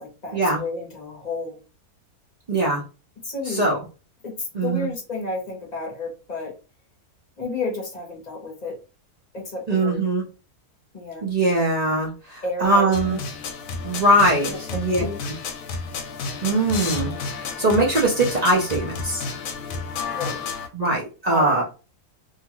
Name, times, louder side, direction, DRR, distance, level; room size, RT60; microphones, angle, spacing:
voice 1, 0.0-1.6 3.2-3.6 4.2-6.5 7.4-8.8 9.3-10.0 10.9-11.2 12.4-13.2 14.5-15.2 20.1-20.4 21.3-21.6, left 2 dB, 35° left, -2 dB, 0.9 m, -31 dB
voice 2, 2.5-2.8 3.5-3.8 4.5-4.9 9.7-10.2 11.2-13.2 13.8-15.0 16.4-19.3 20.7-21.6, right 1 dB, 65° right, -2 dB, 0.4 m, -21 dB
sound 1, 12.9-20.7, left 4 dB, 90° left, 1.1 m, -31 dB
2.8 x 2.3 x 2.9 m, 0.33 s
omnidirectional pair, 1.6 m